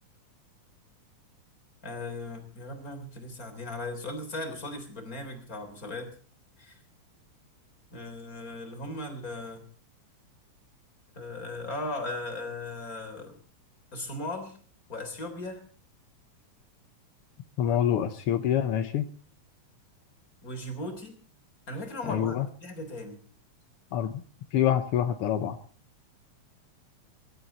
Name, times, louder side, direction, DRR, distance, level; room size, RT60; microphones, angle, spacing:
voice 1, 1.8-6.1 6.6-6.8 7.9-9.6 11.1-13.4 13.9-14.6 14.9-15.6 17.6-17.8 20.4-21.2 21.7-23.2, left 2 dB, 25° left, 5 dB, 3.8 m, -37 dB
voice 2, 17.6-19.1 22.1-22.5 23.9-24.1 24.5-25.6, left 10 dB, 70° left, 9 dB, 1.4 m, -26 dB
23.5 x 12.5 x 4.1 m, 0.43 s
omnidirectional pair, 3.5 m